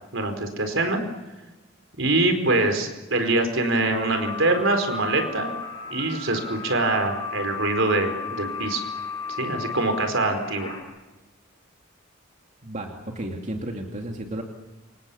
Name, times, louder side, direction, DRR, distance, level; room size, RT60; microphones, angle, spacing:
voice 1, 0.1-1.0 2.0-5.5 5.9-8.8 9.4-10.8, right 2 dB, 65° right, 6 dB, 4.7 m, -24 dB
sound 1, 3.9-10.8, left 4 dB, 25° left, 7.5 m, -34 dB
voice 2, 12.6-14.4, right 1 dB, 35° right, 2 dB, 2.6 m, -33 dB
29.0 x 27.0 x 7.1 m, 1.1 s
head